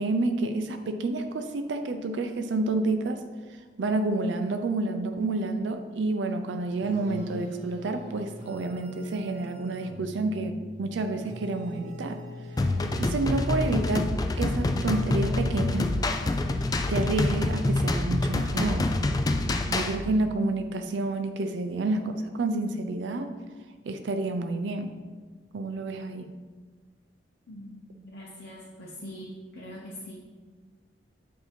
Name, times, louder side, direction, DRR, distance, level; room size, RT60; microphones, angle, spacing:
voice 1, 0.0-3.2 3.8-12.2 13.0-16.0 16.9-19.0 19.7-23.3 23.8-24.9 25.5-26.3, right 2 dB, 75° right, 7 dB, 0.4 m, -29 dB
sound 1, 6.8-14.3, equal, 45° right, 1.1 m, -43 dB
sound 2, 12.6-20.0, left 2 dB, 20° left, 0.3 m, -26 dB
voice 2, 27.5-30.2, equal, 60° left, -4 dB, 0.7 m, -43 dB
7.9 x 2.8 x 4.3 m, 1.4 s
head